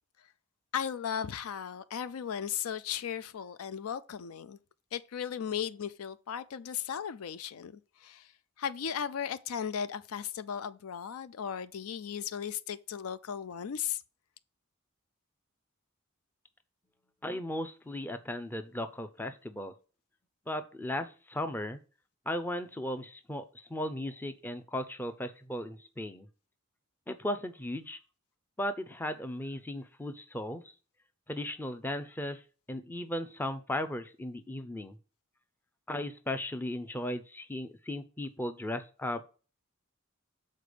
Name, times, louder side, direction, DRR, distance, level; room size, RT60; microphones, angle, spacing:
voice 1, 0.7-4.6 4.9-7.7 8.0-8.2 8.6-14.0, left 8 dB, 80° left, 0.4 m, -36 dB
voice 2, 17.2-19.7 20.5-21.8 22.3-26.3 27.1-28.0 28.6-30.6 31.3-32.4 32.7-35.0 35.9-39.3, left 1 dB, 10° left, 0.5 m, -36 dB
6.6 x 4.2 x 5.1 m
head